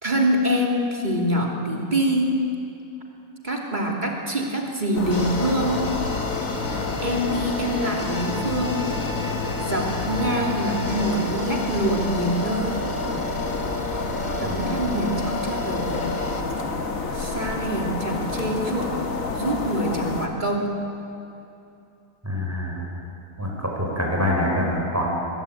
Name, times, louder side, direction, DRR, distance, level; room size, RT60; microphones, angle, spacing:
voice 1, 0.0-2.4 3.4-5.9 7.0-8.9 9.6-12.8 14.4-16.1 17.1-18.9 19.3-20.8, equal, 30° right, 0 dB, 3.0 m, -25 dB
sound 1, 4.9-20.3, left 3 dB, 60° left, 2.2 m, -29 dB
sound 2, 5.1-16.4, left 2 dB, 30° left, 2.0 m, -32 dB
voice 2, 14.4-14.8 22.2-22.8 23.4-25.1, left 1 dB, 10° right, -2 dB, 5.9 m, -25 dB
22.0 x 22.0 x 9.2 m, 2.8 s
omnidirectional pair, 1.7 m